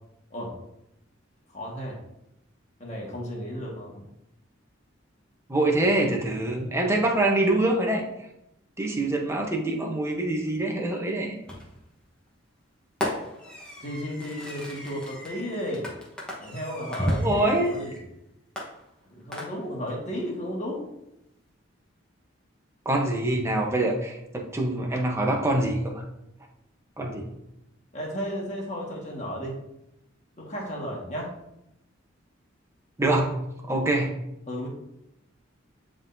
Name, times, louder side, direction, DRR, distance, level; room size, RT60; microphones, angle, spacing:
voice 1, 1.5-2.0 2.8-4.0 13.8-15.9 16.4-17.4 17.7-18.0 19.1-20.9 27.9-29.6 30.4-31.3 34.5-34.7, equal, 35° left, -3 dB, 1.6 m, -33 dB
voice 2, 5.5-8.0 8.8-11.4 17.0-17.7 22.8-26.0 27.0-27.3 33.0-33.3 33.6-34.1, right 1 dB, 15° right, 1 dB, 0.9 m, -25 dB
Fireworks, 11.5-11.9 13.0-18.0 18.6-19.9, left 1 dB, 5° left, 1.2 m, -38 dB
9.8 x 3.7 x 2.7 m, 0.84 s
head